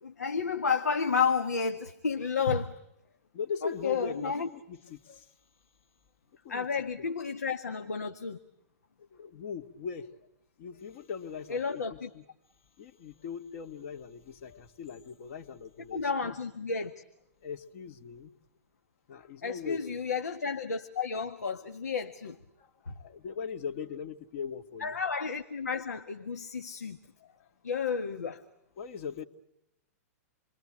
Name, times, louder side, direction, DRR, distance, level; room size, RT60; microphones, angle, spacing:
voice 1, 0.0-2.8 3.6-4.5 6.5-8.4 11.5-12.1 15.9-16.9 19.4-22.4 22.9-23.0 24.8-27.0 27.6-28.4, left 5 dB, 90° left, 8 dB, 1.7 m, -31 dB
voice 2, 3.3-5.3 6.4-6.7 7.0-7.1 9.0-10.2 10.6-12.2 12.8-16.4 17.4-18.3 19.1-20.0 22.6-25.0 27.2-27.5 28.8-29.3, left 6 dB, 55° left, 7 dB, 2.6 m, -40 dB
28.5 x 23.0 x 9.0 m, 0.82 s
hypercardioid pair, 120°, 8 cm